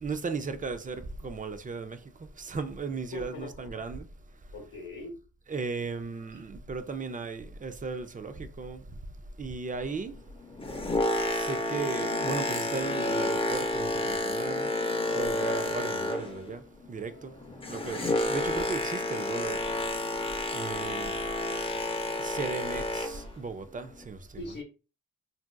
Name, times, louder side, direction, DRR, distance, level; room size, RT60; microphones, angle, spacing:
voice 1, 0.0-4.1 5.5-8.8 9.4-10.2 11.3-14.7 15.1-17.3 17.7-19.6 20.5-21.2 22.1-24.4, right 4 dB, 25° right, 0.4 m, -36 dB
voice 2, 3.1-3.7 4.5-5.2 6.3-6.4 24.4-24.6, left 2 dB, 65° left, 0.9 m, -41 dB
Boat Water vehicle, 10.4-16.5 16.8-23.3 23.9-24.0, left 1 dB, 15° left, 0.6 m, -30 dB
3.9 x 2.3 x 2.2 m
wide cardioid pair, 90°, 34 cm